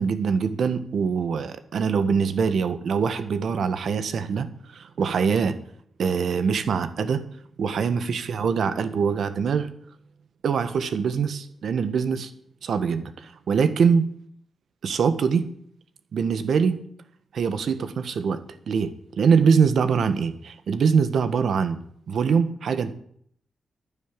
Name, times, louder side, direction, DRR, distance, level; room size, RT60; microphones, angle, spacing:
voice 1, 0.0-4.5 4.7-5.6 6.0-7.2 7.6-9.7 10.4-12.3 12.6-14.1 14.8-15.5 16.1-16.8 17.3-18.4 18.7-21.8 22.1-22.9, right 6 dB, 70° right, 11 dB, 1.4 m, -23 dB
11.0 x 9.8 x 9.9 m, 0.65 s
wide cardioid pair, 155°, 0 cm